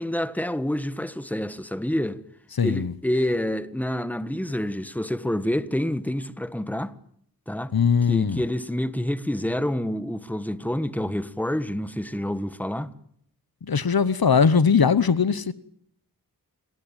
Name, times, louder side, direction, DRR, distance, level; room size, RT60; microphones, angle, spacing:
voice 1, 0.0-2.2 2.6-6.9 7.5-7.7 8.1-12.9, left 1 dB, 5° left, 1.4 m, -28 dB
voice 2, 2.5-2.9 7.7-8.4 13.6-15.5, left 6 dB, 70° left, 1.0 m, -20 dB
27.0 x 19.0 x 9.1 m
wide cardioid pair, 80°, 38 cm